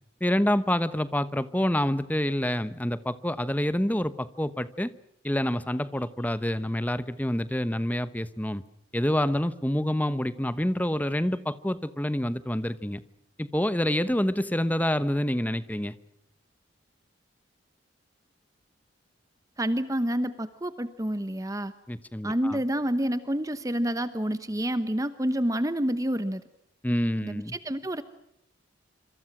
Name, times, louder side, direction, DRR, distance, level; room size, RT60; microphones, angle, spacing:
voice 1, 0.2-4.9 5.2-8.6 8.9-13.0 13.4-15.9 21.9-22.6 26.8-27.5, left 1 dB, 10° left, 14 dB, 1.0 m, -27 dB
voice 2, 19.6-21.7 22.2-26.4 27.2-28.0, equal, 20° right, 11 dB, 1.0 m, -28 dB
27.0 x 26.5 x 6.1 m, 0.80 s
head